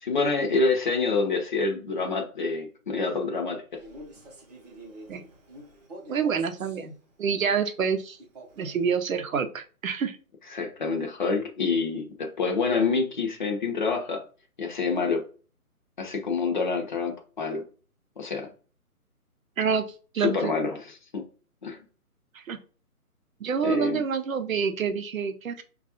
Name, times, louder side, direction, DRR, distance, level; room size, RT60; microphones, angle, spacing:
voice 1, 0.0-3.8 10.5-14.2 14.6-15.2 16.0-17.6 18.2-18.5 20.2-21.2 21.6-21.8 23.6-24.0, left 4 dB, 35° left, 3 dB, 0.5 m, -27 dB
Male speech man speaking, 3.7-6.8 8.2-8.9, right 1 dB, 30° right, 0.7 m, -46 dB
voice 2, 6.1-6.9 7.2-8.2 8.6-10.2 19.6-19.8 20.1-20.5 22.5-22.6 23.4-25.6, right 6 dB, 65° right, 8 dB, 0.7 m, -27 dB
5.4 x 2.3 x 2.7 m, 0.39 s
figure-of-eight pair, 145°, 45 cm